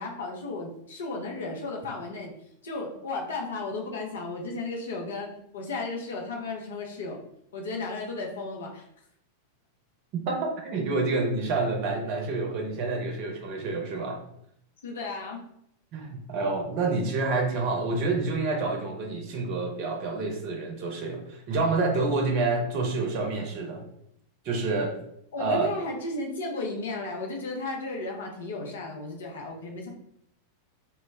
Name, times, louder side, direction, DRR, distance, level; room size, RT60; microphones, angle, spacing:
voice 1, 0.0-2.4 2.6-7.2 7.5-8.9 14.8-15.4 25.3-29.9, left 3 dB, 65° left, 0 dB, 0.6 m, -34 dB
voice 2, 10.3-14.2 15.9-23.9 24.4-25.0 25.4-25.7, right 3 dB, 45° right, 2 dB, 0.6 m, -28 dB
2.1 x 2.0 x 3.3 m, 0.72 s
figure-of-eight pair, 90°, 0 cm